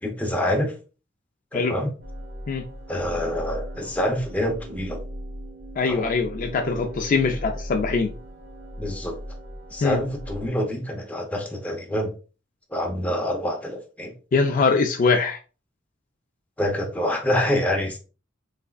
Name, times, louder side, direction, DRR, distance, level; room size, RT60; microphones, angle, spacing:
voice 1, 0.0-0.7 1.5-1.9 2.9-5.0 5.9-6.1 8.8-9.2 9.7-12.1 12.7-14.1 16.6-18.0, left 1 dB, 5° left, 1 dB, 0.7 m, -26 dB
sound 1, 2.0-10.5, equal, 85° right, 1.8 m, -37 dB
voice 2, 5.8-8.1 9.8-10.0 14.3-15.4, left 4 dB, 45° left, 5 dB, 0.3 m, -22 dB
3.5 x 3.3 x 2.3 m, 0.35 s
head